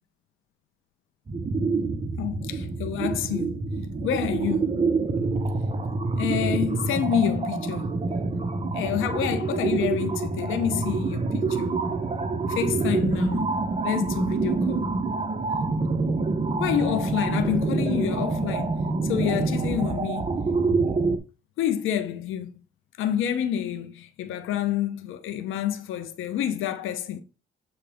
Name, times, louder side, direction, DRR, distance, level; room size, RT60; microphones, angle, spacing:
sound 1, 1.3-21.2, right 3 dB, 30° right, 1.1 m, -26 dB
voice 1, 2.2-3.6 4.0-4.7 6.2-7.9 8.7-11.7 12.5-13.6 13.8-14.9 16.6-20.3 21.6-22.5 23.0-27.2, left 10 dB, 85° left, 0.9 m, -28 dB
8.2 x 3.3 x 5.0 m
cardioid pair, 90°, 20 cm